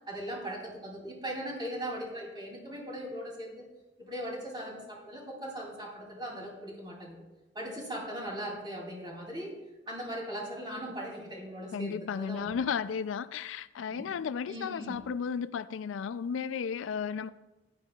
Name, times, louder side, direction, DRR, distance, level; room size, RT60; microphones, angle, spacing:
voice 1, 0.1-3.7 4.0-7.2 7.5-9.6 9.9-12.6 13.9-14.1 14.5-15.0, equal, 25° right, 2.8 m, -39 dB
voice 2, 11.7-17.3, left 6 dB, 85° left, 0.3 m, -34 dB
15.0 x 10.5 x 2.3 m
head